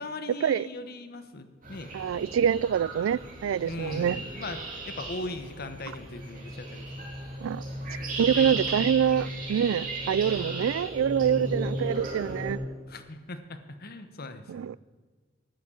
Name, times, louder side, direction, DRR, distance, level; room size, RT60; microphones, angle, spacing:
voice 1, 0.0-2.0 3.6-7.1 8.2-8.9 10.0-10.1 12.9-14.5, left 2 dB, 55° left, 1.1 m, -39 dB
sound 1, 1.6-12.5, right 1 dB, 45° right, 3.0 m, -36 dB
voice 2, 1.9-4.2 7.4-7.6 8.2-12.6 14.5-14.8, right 8 dB, 80° right, 0.3 m, -26 dB
11.0 x 10.0 x 8.5 m
head